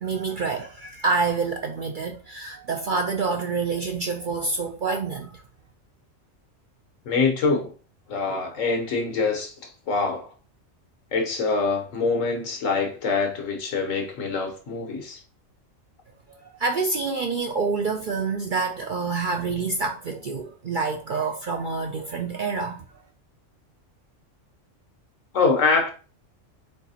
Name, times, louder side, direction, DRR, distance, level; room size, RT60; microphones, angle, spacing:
voice 1, 0.0-5.4 16.4-22.8, right 4 dB, 60° right, 0.5 m, -27 dB
voice 2, 7.0-7.7 8.1-9.5 9.9-10.3 11.1-15.2 25.3-25.9, left 4 dB, 80° left, 1.4 m, -24 dB
4.5 x 4.0 x 2.8 m
omnidirectional pair, 1.3 m